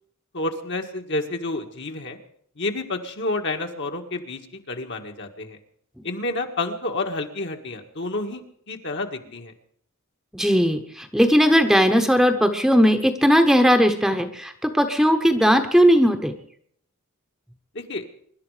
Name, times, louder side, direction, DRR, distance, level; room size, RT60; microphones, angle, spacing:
voice 1, 0.3-2.2 2.6-5.6 6.0-9.5 17.7-18.0, left 2 dB, 55° left, 4 dB, 1.8 m, -29 dB
voice 2, 10.3-16.3, equal, ahead, 7 dB, 1.0 m, -18 dB
24.0 x 11.5 x 5.0 m, 0.63 s
head